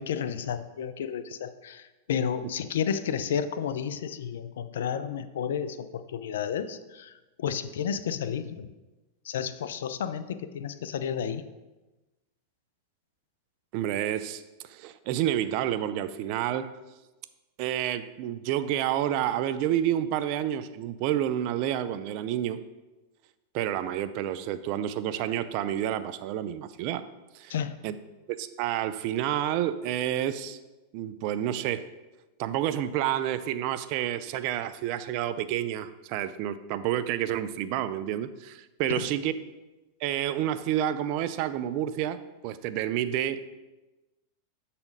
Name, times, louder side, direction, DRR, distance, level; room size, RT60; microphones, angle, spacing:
voice 1, 0.0-8.7 9.3-11.4 27.5-27.7 38.9-39.1, left 8 dB, 75° left, 12 dB, 0.5 m, -32 dB
voice 2, 13.7-16.7 17.6-22.6 23.5-27.1 27.3-27.5 27.8-28.0 28.3-30.6 30.9-31.8 32.4-39.4 40.0-43.5, right 11 dB, 55° right, 13 dB, 0.4 m, -29 dB
7.0 x 4.2 x 5.2 m, 1.1 s
hypercardioid pair, 105°, 0 cm